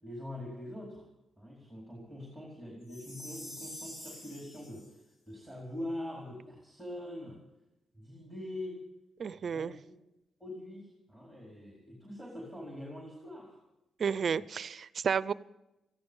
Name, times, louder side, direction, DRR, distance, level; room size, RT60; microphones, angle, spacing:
voice 1, 0.0-1.1 1.4-7.4 7.9-8.8 9.3-9.9 10.4-13.6, left 1 dB, 5° left, -2 dB, 4.6 m, -43 dB
Chime, 2.9-4.9, equal, 80° left, 5.0 m, -46 dB
voice 2, 9.2-9.7 14.0-15.3, right 6 dB, 50° right, 18 dB, 0.5 m, -31 dB
17.5 x 15.0 x 5.5 m, 0.91 s
cardioid pair, 115°, 0 cm